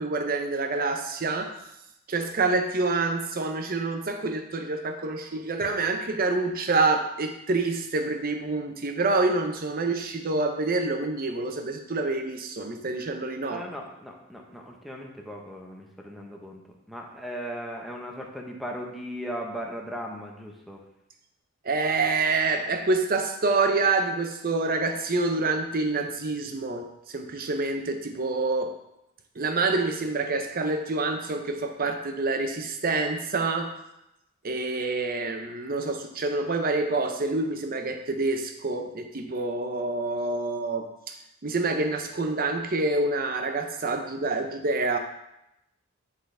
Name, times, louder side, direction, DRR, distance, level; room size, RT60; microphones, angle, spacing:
voice 1, 0.0-1.5 2.1-13.6 21.6-28.8 29.4-33.8 34.4-41.1 41.4-45.0, right 3 dB, 40° right, 5 dB, 0.7 m, -27 dB
voice 2, 13.5-16.6 16.9-20.8, equal, ahead, 0 dB, 0.8 m, -37 dB
9.3 x 3.9 x 3.4 m, 0.85 s
head